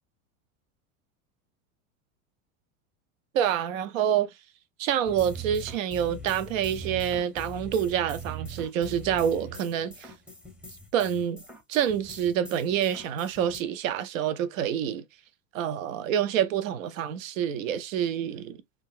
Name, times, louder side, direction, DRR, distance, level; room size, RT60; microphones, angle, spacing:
voice 1, 3.3-4.3 4.8-10.1 10.9-11.4 11.7-15.0 15.5-18.6, right 9 dB, 75° right, 0.6 m, -27 dB
sound 1, 5.1-13.6, right 3 dB, 5° right, 0.6 m, -41 dB
3.7 x 2.4 x 2.4 m
hypercardioid pair, 105°, 40 cm